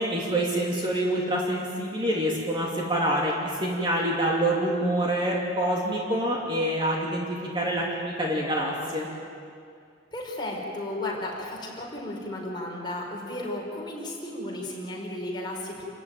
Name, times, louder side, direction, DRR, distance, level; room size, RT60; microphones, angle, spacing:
voice 1, 0.0-7.3 7.5-9.1, right 1 dB, 30° right, -3 dB, 3.0 m, -26 dB
voice 2, 10.1-15.8, left 1 dB, 25° left, -2 dB, 4.9 m, -34 dB
28.5 x 14.5 x 9.3 m, 2.4 s
head